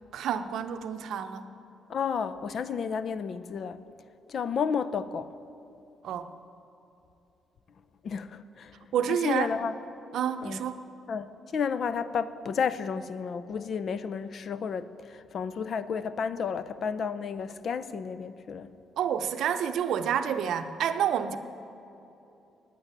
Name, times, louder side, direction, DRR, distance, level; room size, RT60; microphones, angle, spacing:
voice 1, 0.0-1.5 6.0-6.3 8.9-9.5 10.1-10.8 19.0-21.4, right 8 dB, 75° right, 0.6 m, -29 dB
voice 2, 1.9-3.8 4.3-5.3 8.0-8.7 9.1-9.7 10.4-10.6 11.1-18.7, left 6 dB, 55° left, 0.5 m, -32 dB
9.8 x 8.9 x 8.9 m
cardioid pair, 90°, 0 cm